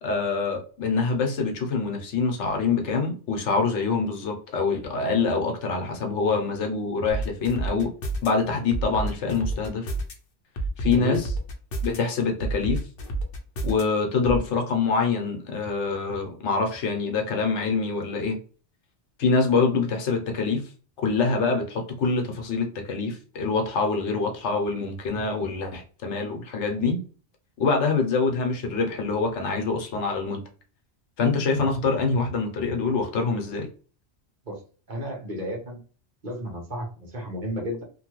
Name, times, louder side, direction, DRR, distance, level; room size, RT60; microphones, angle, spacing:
voice 1, 0.0-7.9 8.2-9.9 10.8-11.3 11.8-12.9 13.6-18.4 19.2-20.6 21.0-27.0 27.6-30.4 31.2-33.7, left 4 dB, 85° left, 1.0 m, -25 dB
sound 1, 7.1-8.3 8.7-10.1 10.6-12.0 12.4-13.8 14.2-14.4, right 2 dB, 60° left, 0.9 m, -29 dB
voice 2, 10.8-11.2 34.5-34.6 34.9-35.8 36.2-37.8, left 1 dB, 45° right, 1.0 m, -32 dB
2.9 x 2.2 x 2.9 m
omnidirectional pair, 1.2 m